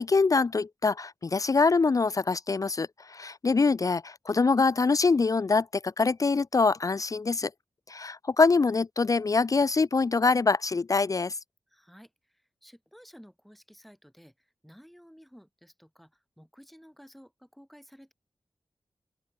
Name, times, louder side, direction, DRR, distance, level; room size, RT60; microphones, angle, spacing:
voice 1, 0.0-7.5 7.9-11.4, left 4 dB, 45° left, 0.6 m, -24 dB
voice 2, 11.7-18.1, equal, ahead, 7.5 m, -54 dB
open air
cardioid pair, 50°, 8 cm